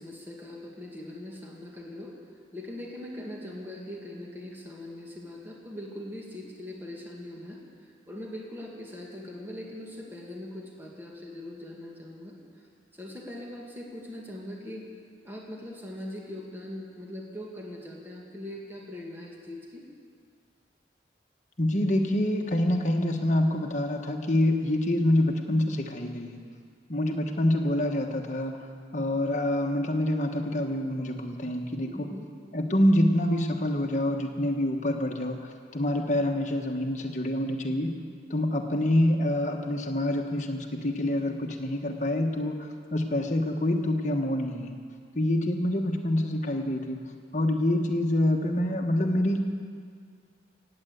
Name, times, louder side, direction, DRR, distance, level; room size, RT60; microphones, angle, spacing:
voice 1, 0.0-2.1 2.5-7.6 8.1-12.4 12.9-14.9 15.2-19.9 31.8-32.3, left 1 dB, 10° right, -2 dB, 2.2 m, -41 dB
voice 2, 21.6-26.4 26.9-28.6 28.9-32.1 32.5-35.4 35.7-37.9 38.3-44.8 45.1-47.0 47.3-49.4, left 1 dB, 40° left, 3 dB, 1.4 m, -26 dB
17.0 x 8.9 x 8.2 m, 2.1 s
head